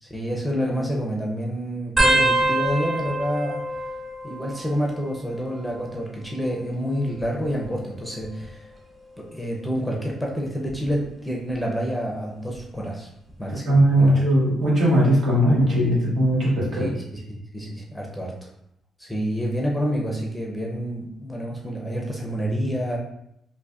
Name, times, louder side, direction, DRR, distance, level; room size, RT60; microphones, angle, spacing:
voice 1, 0.0-3.6 4.2-8.7 9.2-13.1 13.4-14.2 16.7-18.5 19.0-23.0, equal, ahead, -3 dB, 0.6 m, -28 dB
sound 1, 2.0-5.1 5.4-6.0 7.0-8.5 9.1-9.5 10.7-11.0 12.5-12.6, right 1 dB, 30° right, 0.8 m, -26 dB
voice 2, 13.7-16.9, equal, 65° right, -5 dB, 1.3 m, -19 dB
3.9 x 2.5 x 2.4 m, 0.77 s
cardioid pair, 95°, 0 cm